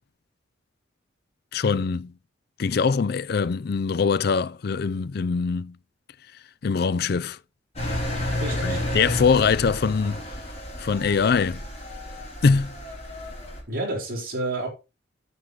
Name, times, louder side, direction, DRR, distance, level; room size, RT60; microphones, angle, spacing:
voice 1, 1.5-2.1 2.6-5.7 6.6-7.4 8.6-10.2 10.8-11.6 12.4-12.7, left 5 dB, 55° left, 0.4 m, -23 dB
Engine, 7.8-13.6, left 1 dB, 35° left, 4.7 m, -31 dB
voice 2, 8.4-8.8 13.7-14.7, right 2 dB, 50° right, 4.6 m, -29 dB
9.3 x 6.7 x 4.9 m
head